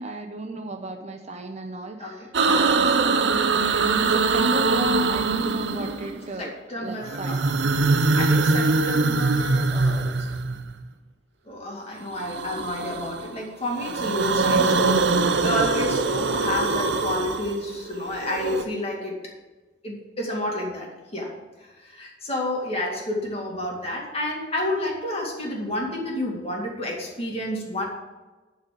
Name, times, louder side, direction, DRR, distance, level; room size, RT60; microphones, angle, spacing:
voice 1, 0.0-7.4 12.2-12.5, right 1 dB, 35° right, 4 dB, 0.8 m, -33 dB
sound 1, 2.3-6.3 7.0-10.8 12.1-13.3 13.6-18.6, right 3 dB, 65° right, 0.7 m, -23 dB
voice 2, 6.4-7.5 8.1-10.3 11.5-19.2 19.8-21.3 21.6-27.9, left 1 dB, 35° left, -2 dB, 2.2 m, -30 dB
11.0 x 4.2 x 6.7 m, 1.2 s
head